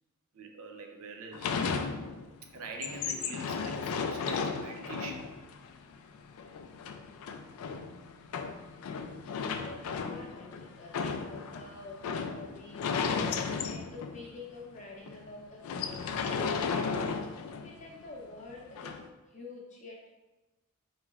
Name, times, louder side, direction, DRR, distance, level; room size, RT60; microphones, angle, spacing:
voice 1, 0.3-1.6 2.5-5.3, right 3 dB, 80° right, 3 dB, 0.5 m, -44 dB
sound 1, 1.3-2.4 2.7-14.4 14.8-14.9 15.1-15.3 15.6-17.8 18.8-19.0, left 5 dB, 80° left, 0.3 m, -35 dB
voice 2, 9.5-11.0 11.3-12.0 12.3-13.1 13.7-16.1 16.5-16.9 17.4-19.0 19.3-20.0, left 3 dB, 35° left, -3 dB, 0.5 m, -47 dB
4.3 x 3.0 x 2.3 m, 1.1 s
head